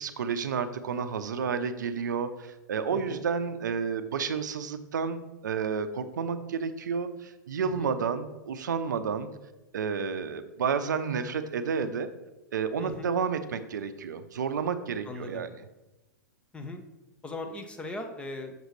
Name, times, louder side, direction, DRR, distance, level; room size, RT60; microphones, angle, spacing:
voice 1, 0.0-9.3 9.7-12.1 12.5-15.5, right 6 dB, 70° right, 11 dB, 0.5 m, -31 dB
voice 2, 2.9-3.2 7.6-7.9 12.8-13.1 15.1-15.5 16.5-16.8 17.2-18.5, left 2 dB, 10° left, 5 dB, 0.7 m, -39 dB
6.6 x 6.3 x 3.2 m, 1.0 s
figure-of-eight pair, 110°, 10 cm